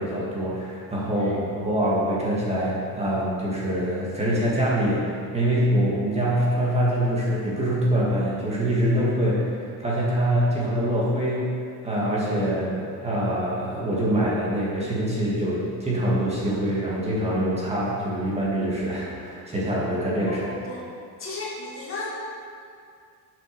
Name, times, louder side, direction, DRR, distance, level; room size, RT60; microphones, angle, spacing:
voice 1, 0.0-11.5 11.8-20.4, right 1 dB, 15° right, -6 dB, 1.9 m, -24 dB
voice 2, 20.3-20.8 21.2-22.1, left 2 dB, 35° left, -5 dB, 2.1 m, -35 dB
7.0 x 6.6 x 6.7 m, 2.2 s
cardioid pair, 150°, 38 cm